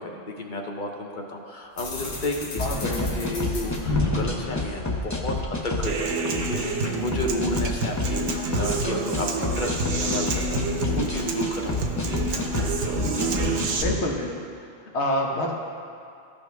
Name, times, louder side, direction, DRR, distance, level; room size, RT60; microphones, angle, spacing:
voice 1, 0.0-2.9 3.2-12.4, left 1 dB, 45° left, 1 dB, 0.8 m, -32 dB
sound 1, 1.8-5.6, left 2 dB, 80° left, 1.5 m, -32 dB
voice 2, 2.6-3.1 11.3-11.8 13.7-14.5 14.9-15.5, left 1 dB, 65° left, 0 dB, 1.3 m, -28 dB
sound 2, 2.6-14.0, left 2 dB, 20° left, 0.5 m, -29 dB
Human voice / Acoustic guitar, 5.8-13.8, right 3 dB, 70° right, 1.1 m, -28 dB
14.0 x 5.3 x 3.5 m, 2.4 s
omnidirectional pair, 1.3 m